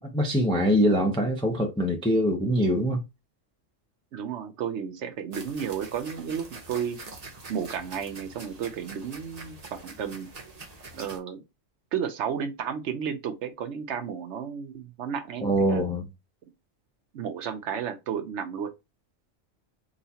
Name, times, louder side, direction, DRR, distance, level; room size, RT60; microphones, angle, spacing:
voice 1, 0.0-3.0 15.4-16.1, equal, 10° left, 0.3 m, -23 dB
voice 2, 4.1-7.0 7.5-9.6 9.8-10.3 10.9-11.4 11.9-15.8 17.1-18.7, right 7 dB, 70° right, 0.9 m, -32 dB
sound 1, 5.3-11.2, right 3 dB, 40° right, 0.7 m, -45 dB
3.9 x 2.4 x 2.7 m
omnidirectional pair, 1.3 m